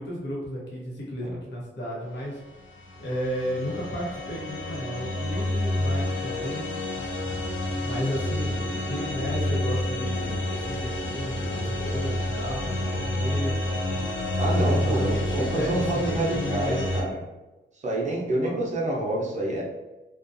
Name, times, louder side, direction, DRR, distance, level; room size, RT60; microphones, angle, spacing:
voice 1, 0.0-2.4 3.0-6.6 7.8-13.5 14.5-16.8 18.4-18.5, equal, 70° left, -4 dB, 0.9 m, -33 dB
sound 1, 2.7-17.0, left 1 dB, 85° left, 0.5 m, -29 dB
voice 2, 14.4-17.2 17.8-19.6, right 1 dB, 40° right, -4 dB, 0.6 m, -27 dB
2.5 x 2.2 x 2.5 m, 1.1 s
wide cardioid pair, 135°, 19 cm